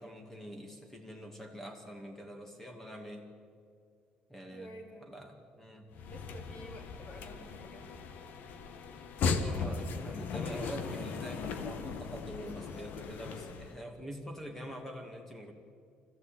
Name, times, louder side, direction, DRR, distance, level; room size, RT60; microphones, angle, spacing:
voice 1, 0.0-3.3 4.3-4.7 5.0-5.9 9.2-15.5, equal, 10° left, 3 dB, 2.4 m, -45 dB
voice 2, 4.5-5.1 6.1-8.0, equal, 35° left, 3 dB, 3.5 m, -50 dB
sound 1, 5.9-13.8, left 5 dB, 60° left, 1.6 m, -37 dB
25.0 x 15.0 x 8.9 m, 2.3 s
cardioid pair, 135°, 3 cm